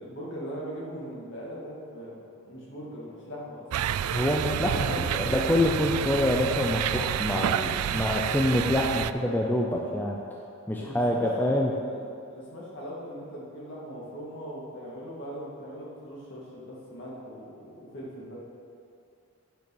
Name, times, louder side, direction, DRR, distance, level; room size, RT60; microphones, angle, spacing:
voice 1, 0.0-2.1 2.4-3.7 4.7-5.3 5.9-6.0 10.7-11.2 11.8-12.0 12.3-18.4, equal, 55° left, -5 dB, 2.2 m, -40 dB
sound 1, 3.7-9.1, right 9 dB, 85° right, 0.3 m, -29 dB
voice 2, 4.1-4.8 5.2-10.2 10.7-11.8, left 1 dB, 10° left, -2 dB, 0.5 m, -26 dB
9.1 x 5.7 x 6.2 m, 2.5 s
head